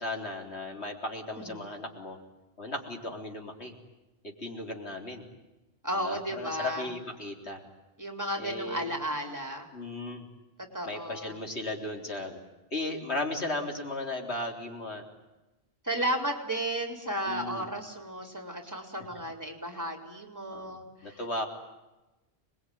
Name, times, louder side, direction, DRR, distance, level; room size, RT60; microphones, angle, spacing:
voice 1, 0.0-2.2 2.6-3.7 4.2-5.3 6.0-7.6 8.4-8.9 9.7-10.2 10.9-12.4 12.7-15.1 17.3-17.7 20.5-20.8 21.0-21.5, left 2 dB, 90° left, 2 dB, 4.1 m, -36 dB
voice 2, 1.4-1.7 5.8-6.9 8.0-9.7 10.7-11.4 15.8-21.2, right 1 dB, 15° right, 4 dB, 4.3 m, -34 dB
26.0 x 21.5 x 9.5 m, 1.1 s
omnidirectional pair, 1.1 m